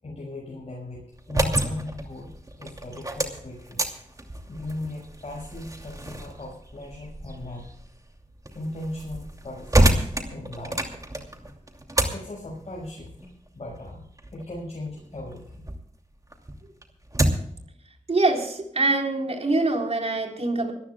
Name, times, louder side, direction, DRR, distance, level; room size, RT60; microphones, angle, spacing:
voice 1, 0.0-3.8 4.4-7.7 8.5-10.8 12.1-13.1 13.5-15.7, left 1 dB, 50° left, -4 dB, 5.8 m, -38 dB
sound 1, 1.1-15.8 16.2-17.6, right 1 dB, 25° right, 2.6 m, -29 dB
voice 2, 18.1-20.7, right 2 dB, 55° right, 2 dB, 4.1 m, -24 dB
25.5 x 14.5 x 2.3 m, 0.70 s
cardioid pair, 55°, 13 cm